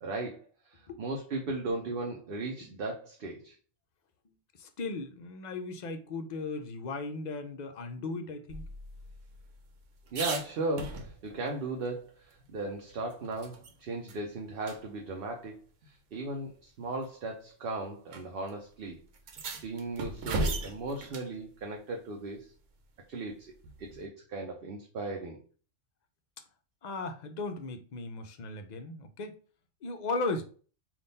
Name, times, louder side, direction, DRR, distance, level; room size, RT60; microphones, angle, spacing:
voice 1, 0.0-3.6 10.1-19.0 19.5-22.5 23.1-23.5 23.8-25.4, right 2 dB, 55° right, 0.8 m, -37 dB
voice 2, 4.6-8.6 26.8-29.4 29.8-30.4, left 3 dB, 60° left, 0.4 m, -36 dB
sound 1, 8.5-11.5 11.9-12.0 12.3-13.7 14.1-14.2 14.6-14.8 15.8-15.9 16.8-17.1 18.1-18.2 18.5-18.6 19.1-21.3 23.6-24.1, right 2 dB, 80° right, 1.0 m, -38 dB
3.7 x 2.5 x 3.9 m
omnidirectional pair, 1.3 m